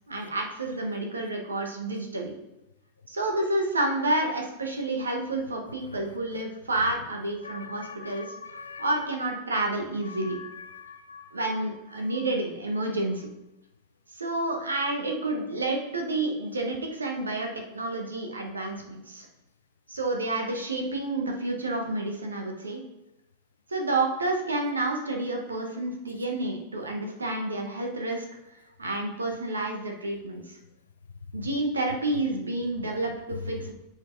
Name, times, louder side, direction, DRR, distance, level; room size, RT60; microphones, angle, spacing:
voice 1, 0.1-2.4 3.1-8.3 8.8-10.4 11.3-13.3 14.1-19.3 19.9-22.8 23.7-28.2 28.8-30.6 31.3-33.7, right 2 dB, 75° right, 1 dB, 1.1 m, -29 dB
voice 2, 7.4-8.9 10.1-11.3 12.1-12.2, left 5 dB, 75° left, 10 dB, 0.5 m, -43 dB
9.0 x 5.2 x 2.7 m, 0.92 s
figure-of-eight pair, 90°, 0 cm